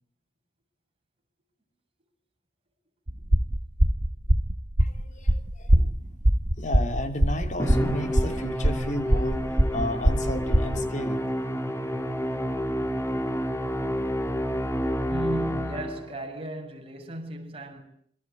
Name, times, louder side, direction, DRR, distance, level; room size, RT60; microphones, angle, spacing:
sound 1, 3.1-10.8, equal, 50° right, 1.9 m, -22 dB
voice 1, 4.8-5.9 6.6-11.3, left 1 dB, 40° left, 3.0 m, -33 dB
Musical instrument, 7.6-16.2, equal, 15° left, 3.1 m, -29 dB
voice 2, 15.1-17.8, right 1 dB, 30° right, 6.9 m, -35 dB
26.5 x 25.0 x 8.6 m
head